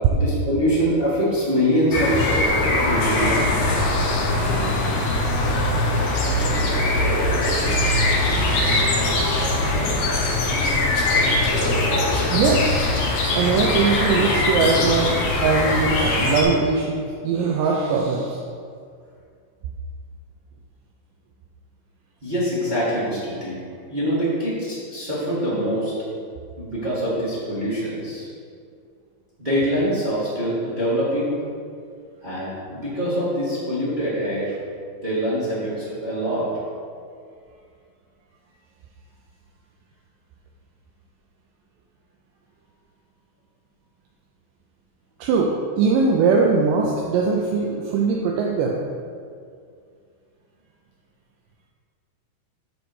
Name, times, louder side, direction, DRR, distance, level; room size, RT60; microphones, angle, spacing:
voice 1, 0.1-2.3 2.8-3.4 22.2-23.6 23.9-25.9 26.6-28.3 29.4-31.3 32.2-34.5 35.0-36.5, equal, 40° right, -10 dB, 0.6 m, -24 dB
sound 1, 1.9-16.4, left 2 dB, 65° left, 2.8 m, -21 dB
voice 2, 12.3-12.8 13.3-18.4 45.2-48.8, right 4 dB, 80° right, -1 dB, 2.8 m, -21 dB
10.5 x 4.1 x 6.3 m, 2.3 s
omnidirectional pair, 5.2 m